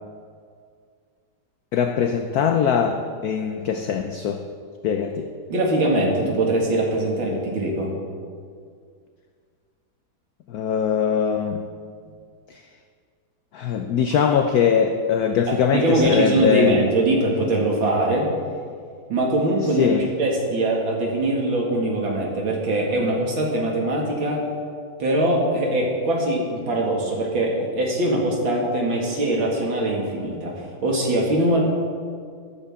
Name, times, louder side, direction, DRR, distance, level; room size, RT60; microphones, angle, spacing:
voice 1, 1.7-4.4 4.8-5.3 10.5-11.6 12.5-12.6 13.5-16.8 19.7-20.1, left 7 dB, 65° left, 6 dB, 0.9 m, -22 dB
voice 2, 5.5-7.9 15.5-18.3 19.1-24.4 25.0-30.5 30.8-31.6, right 1 dB, 75° right, -2 dB, 2.9 m, -22 dB
14.0 x 12.5 x 3.7 m, 2.1 s
omnidirectional pair, 2.2 m